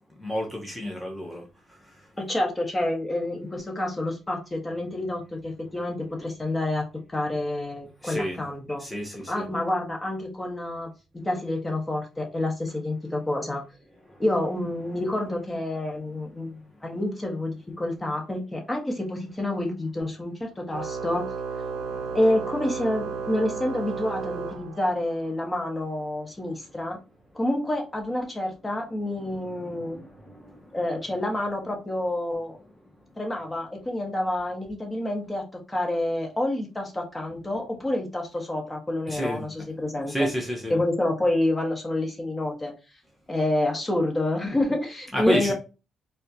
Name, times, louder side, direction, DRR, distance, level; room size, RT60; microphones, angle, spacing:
voice 1, 0.2-2.1 8.0-8.4 8.8-9.5 14.1-14.2 21.7-22.2 29.5-30.8 39.1-39.4 40.1-40.7 45.1-45.5, equal, ahead, -1 dB, 0.8 m, -31 dB
voice 2, 2.2-8.8 9.3-10.9 11.2-13.6 14.2-21.3 21.9-27.0 27.3-30.0 30.7-32.6 33.2-40.3 40.7-42.7 43.3-45.5, left 1 dB, 20° left, 0 dB, 1.2 m, -28 dB
Organ, 20.7-25.2, right 5 dB, 85° right, 0.5 m, -33 dB
4.3 x 2.3 x 2.7 m, 0.30 s
cardioid pair, 90°, 0 cm